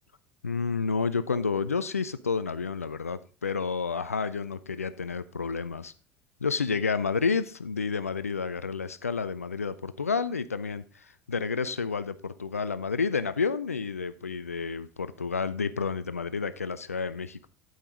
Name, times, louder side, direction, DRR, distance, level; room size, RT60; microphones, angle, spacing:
voice 1, 0.4-5.9 6.4-17.5, left 5 dB, 80° left, 14 dB, 0.4 m, -30 dB
8.9 x 7.9 x 3.8 m, 0.35 s
figure-of-eight pair, 70°, 8 cm